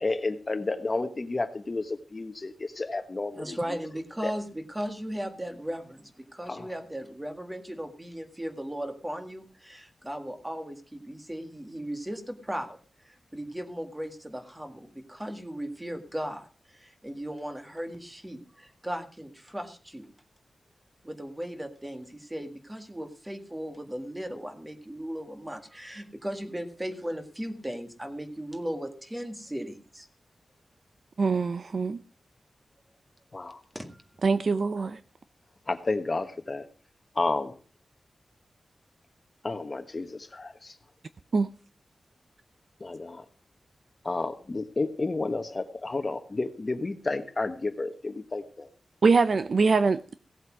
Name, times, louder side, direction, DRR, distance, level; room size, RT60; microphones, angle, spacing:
voice 1, 0.0-3.6 4.2-4.3 6.5-6.7 33.3-33.6 35.7-36.6 37.1-37.6 39.4-40.7 42.8-43.2 44.0-48.7, left 3 dB, 30° left, 1.4 m, -31 dB
voice 2, 3.4-12.8 13.0-20.1 21.0-30.1 33.7-34.0, equal, 10° right, 1.9 m, -37 dB
voice 3, 31.2-32.0 34.2-35.0 41.3-41.5 49.0-50.2, right 4 dB, 55° right, 0.6 m, -23 dB
17.0 x 8.2 x 6.2 m
wide cardioid pair, 125°, 0 cm